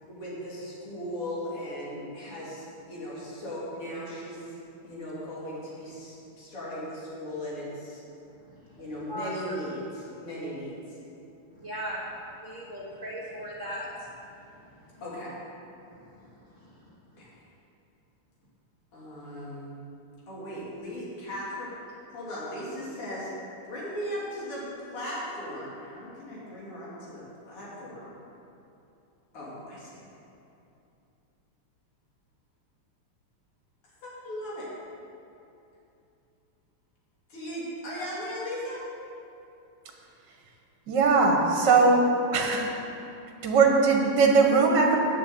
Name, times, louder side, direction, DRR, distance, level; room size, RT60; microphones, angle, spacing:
voice 1, 0.1-4.5 4.8-8.0 8.8-11.0 15.0-15.3 17.2-17.3 18.9-19.7 20.3-21.7 22.1-23.3 23.6-24.6 24.9-28.1 29.3-30.1 34.0-34.7 37.3-38.8, equal, 85° left, -7 dB, 3.6 m, -37 dB
voice 2, 9.1-9.6 11.5-12.0 12.4-14.1 15.9-16.0, equal, 40° right, -5 dB, 1.6 m, -37 dB
voice 3, 40.9-42.7 43.4-45.0, right 4 dB, 55° right, 1 dB, 1.9 m, -20 dB
9.6 x 7.0 x 7.8 m, 2.7 s
omnidirectional pair, 2.4 m